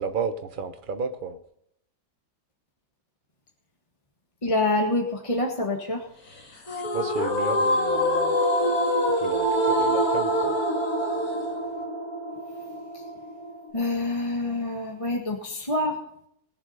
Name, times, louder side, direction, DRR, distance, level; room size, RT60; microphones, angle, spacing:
voice 1, 0.0-1.4 6.9-8.4 9.2-10.6, right 5 dB, 30° right, 8 dB, 1.0 m, -32 dB
voice 2, 4.4-6.0 13.7-16.0, left 2 dB, 20° left, 1 dB, 1.5 m, -26 dB
sound 1, 6.7-13.7, equal, 50° left, 2.6 m, -25 dB
20.0 x 7.3 x 5.6 m, 0.73 s
omnidirectional pair, 2.1 m